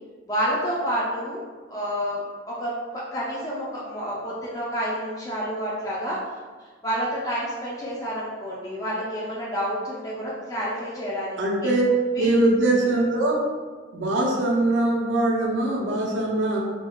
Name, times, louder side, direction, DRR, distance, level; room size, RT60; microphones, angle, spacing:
voice 1, 0.3-1.4 1.7-6.2 6.8-11.7 12.1-12.4, equal, 20° left, -7 dB, 0.4 m, -29 dB
voice 2, 11.4-11.9 12.2-13.4 13.9-16.6, right 2 dB, 75° right, -2 dB, 0.6 m, -22 dB
3.5 x 2.3 x 2.3 m, 1.4 s
head